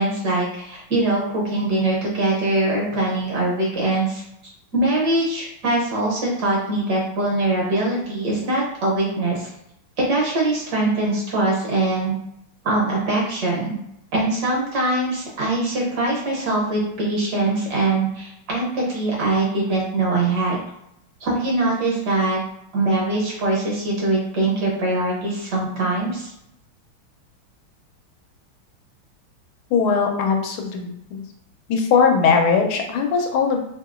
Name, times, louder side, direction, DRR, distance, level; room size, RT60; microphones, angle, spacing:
voice 1, 0.0-4.2 4.7-9.5 10.0-12.1 12.6-13.8 14.1-20.6 21.2-22.4 22.7-26.3, right 2 dB, 65° right, -3 dB, 1.2 m, -22 dB
voice 2, 29.7-31.2 31.7-33.6, left 5 dB, 90° left, 3 dB, 1.5 m, -19 dB
3.5 x 2.8 x 2.4 m, 0.80 s
omnidirectional pair, 2.3 m